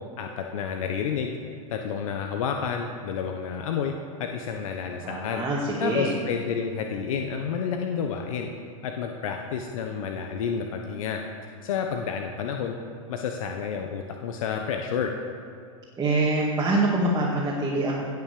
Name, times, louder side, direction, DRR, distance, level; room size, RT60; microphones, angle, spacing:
voice 1, 0.2-1.4 1.7-3.9 4.2-5.4 5.8-8.5 8.8-11.2 11.6-12.8 13.1-15.1, left 7 dB, 70° left, 3 dB, 1.1 m, -30 dB
voice 2, 5.0-6.1 16.0-18.0, right 2 dB, 20° right, -5 dB, 2.2 m, -25 dB
17.0 x 5.9 x 6.8 m, 2.4 s
hypercardioid pair, 120°, 18 cm